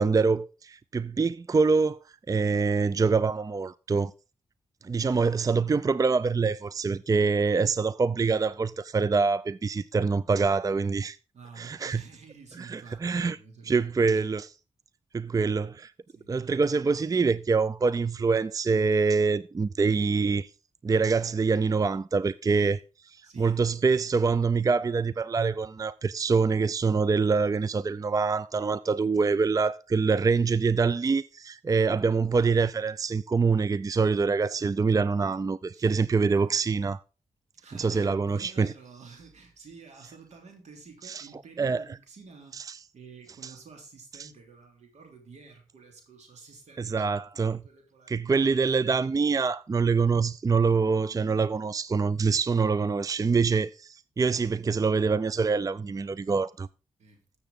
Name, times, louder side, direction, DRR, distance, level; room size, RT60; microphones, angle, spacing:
voice 1, 0.0-2.0 2.3-4.1 4.8-11.2 11.6-12.0 12.6-13.4 13.7-14.5 15.1-15.9 16.3-20.5 20.8-37.0 37.8-38.7 41.0-41.3 41.6-41.8 43.4-43.5 46.8-47.6 48.1-56.7, right 4 dB, 30° right, 0.4 m, -25 dB
voice 2, 11.3-14.1 16.1-16.3 23.2-23.6 35.7-36.6 37.6-42.6 42.9-48.5 57.0-57.2, right 4 dB, 75° right, 3.4 m, -50 dB
14.0 x 7.1 x 3.7 m
cardioid pair, 50°, 12 cm